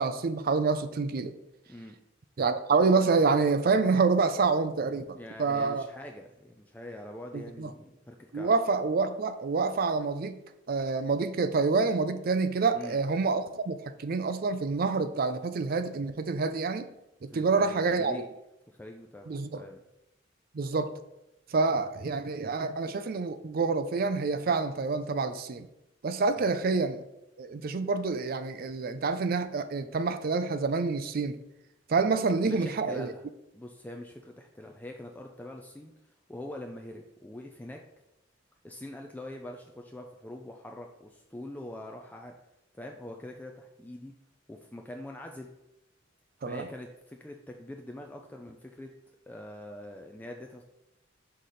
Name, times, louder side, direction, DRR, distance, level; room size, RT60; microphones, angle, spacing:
voice 1, 0.0-1.4 2.4-5.9 7.3-7.7 8.3-10.4 10.7-16.9 17.2-18.3 19.3-19.6 20.5-20.9 21.5-25.7 26.0-27.0 27.4-31.4 31.9-33.1 46.4-46.7, right 4 dB, 50° right, 10 dB, 0.4 m, -27 dB
voice 2, 5.1-8.5 12.7-13.0 17.3-18.3 18.7-19.8 26.4-26.6 32.5-33.2 33.5-35.9 36.3-37.8 38.6-42.4 42.7-44.1 44.5-45.5 46.5-48.9 49.3-50.6, left 1 dB, 10° left, 2 dB, 0.4 m, -44 dB
5.8 x 4.0 x 4.9 m, 0.91 s
head